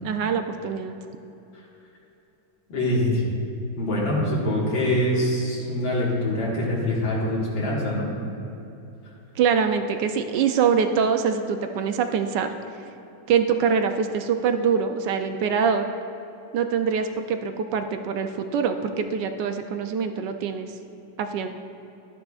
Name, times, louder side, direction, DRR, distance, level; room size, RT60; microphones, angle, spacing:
voice 1, 0.0-1.0 9.4-12.5 13.3-15.9 16.5-20.7 21.2-21.5, right 6 dB, 75° right, 7 dB, 1.2 m, -24 dB
voice 2, 2.7-3.2 3.8-8.1, left 1 dB, 85° left, -5 dB, 2.4 m, -24 dB
12.0 x 10.0 x 2.4 m, 2.9 s
omnidirectional pair, 2.0 m